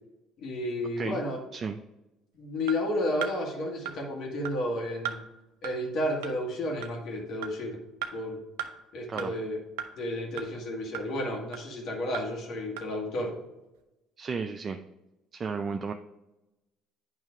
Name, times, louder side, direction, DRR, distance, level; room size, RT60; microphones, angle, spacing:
voice 1, 0.4-1.4 2.4-5.2 5.6-7.8 8.1-8.4 8.9-9.6 10.0-13.4, left 1 dB, 60° left, 0 dB, 1.9 m, -32 dB
sound 1, 2.7-2.8 3.2-3.3 3.9-4.0 4.5-4.6 5.1-5.2 5.6-5.7 6.2-6.3 6.8-6.9 7.4-7.5 8.0-8.1 8.6-8.7 9.2-9.3 9.8-9.9 10.4-10.5 10.9-11.1 11.5-11.6 12.1-12.2 12.8-12.9, right 10 dB, 85° right, 0.6 m, -35 dB
voice 2, 14.2-14.8 15.3-15.9, right 5 dB, 40° right, 6 dB, 0.4 m, -33 dB
9.1 x 3.2 x 4.9 m, 0.97 s
supercardioid pair, 75°, 0 cm